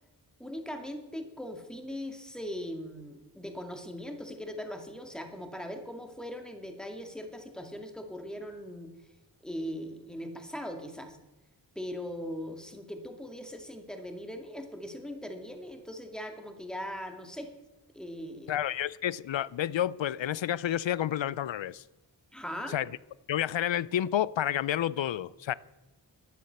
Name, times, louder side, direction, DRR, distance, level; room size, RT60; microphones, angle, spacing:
voice 1, 0.4-8.9 9.4-11.2 11.8-17.5 17.9-18.6 22.3-22.8, equal, ahead, 2.2 m, -40 dB
voice 2, 18.5-21.8 22.7-22.9 23.3-25.5, left 11 dB, 75° left, 0.5 m, -30 dB
12.0 x 10.0 x 7.9 m
wide cardioid pair, 60°, 45 cm